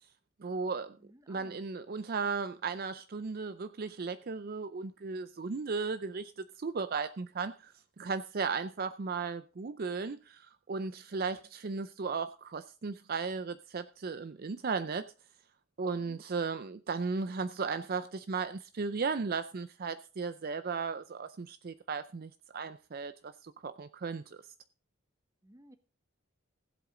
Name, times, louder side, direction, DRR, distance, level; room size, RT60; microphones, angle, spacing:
voice 1, 0.4-1.0 1.3-6.3 6.6-15.1 15.8-24.4, right 4 dB, 45° right, 0.4 m, -36 dB
voice 2, 1.0-1.6 25.4-25.8, right 1 dB, 15° right, 0.8 m, -57 dB
15.5 x 8.1 x 3.8 m
head